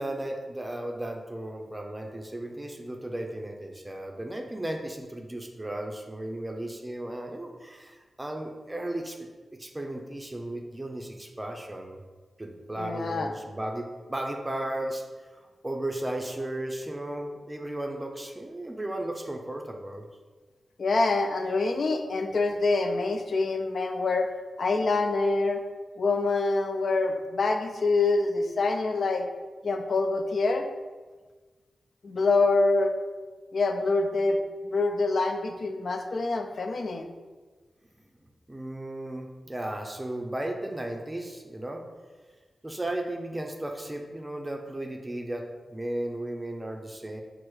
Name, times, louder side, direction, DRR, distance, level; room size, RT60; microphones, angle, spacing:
voice 1, 0.0-9.2 9.5-12.0 12.4-15.0 15.3-20.0 38.5-41.8 42.6-47.2, right 1 dB, 20° right, 2 dB, 0.5 m, -35 dB
voice 2, 12.8-13.3 20.8-24.3 24.6-25.6 26.0-29.3 29.6-30.7 32.0-32.9 33.5-34.4 34.6-37.1, left 3 dB, 65° left, 5 dB, 0.4 m, -25 dB
4.7 x 2.0 x 4.5 m, 1.3 s
cardioid pair, 70°, 0 cm